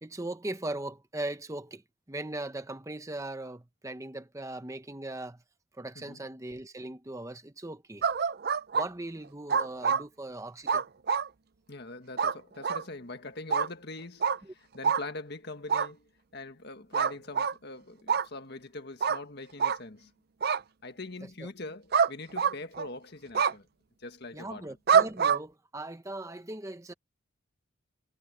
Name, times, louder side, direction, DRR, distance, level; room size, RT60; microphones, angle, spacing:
voice 1, 0.0-1.8 2.1-5.4 5.7-8.1 8.7-10.8 14.4-14.5 21.4-21.5 24.3-26.9, right 2 dB, 15° right, 0.8 m, -39 dB
sound 1, 8.0-8.9 9.5-10.0 10.7-11.3 12.2-12.3 12.6-12.8 13.5-13.7 14.2-14.4 14.8-15.0 15.7-15.9 16.9-17.5 18.1-18.3 19.0-19.2 19.6-19.8 20.4-20.6 21.9-22.1 22.4-22.9 23.3-23.5 24.9-25.4, right 6 dB, 50° right, 0.5 m, -25 dB
voice 2, 11.7-20.1 20.8-23.7 24.0-24.7, left 2 dB, 55° left, 1.7 m, -43 dB
head